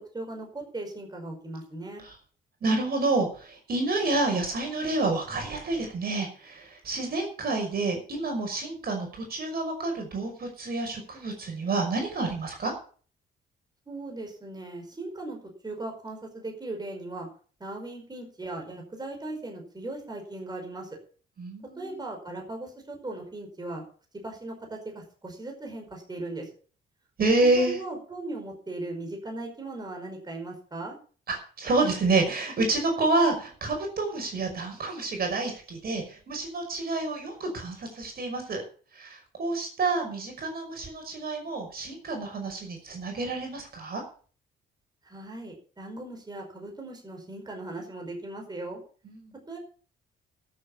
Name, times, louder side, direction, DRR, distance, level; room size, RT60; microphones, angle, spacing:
voice 1, 0.0-2.0 13.9-15.4 15.6-17.3 17.6-21.0 21.8-23.8 24.2-26.5 27.6-31.0 45.0-48.8 49.5-49.6, right 2 dB, 20° right, 2 dB, 5.3 m, -38 dB
voice 2, 2.6-12.7 21.4-22.0 27.2-27.8 31.3-38.6 39.0-44.0 49.1-49.3, right 3 dB, 50° right, 3 dB, 5.7 m, -28 dB
13.0 x 8.3 x 7.3 m, 0.42 s
cardioid pair, 90°, 20 cm